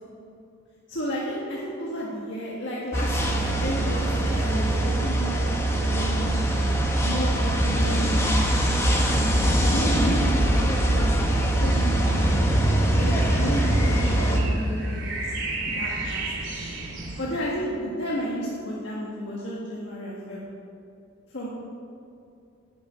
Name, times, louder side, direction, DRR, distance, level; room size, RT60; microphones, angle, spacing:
voice 1, 0.9-6.7 7.0-8.6 9.0-9.3 9.6-12.1 13.0-15.3 15.8-16.2 16.5-16.6 17.2-20.4 21.3-21.5, equal, 65° left, -6 dB, 1.8 m, -32 dB
sound 1, 2.9-14.4, right 1 dB, 15° left, 1.2 m, -22 dB
sound 2, 11.6-17.2, right 2 dB, 70° right, 2.2 m, -33 dB
11.0 x 7.2 x 8.6 m, 2.7 s
head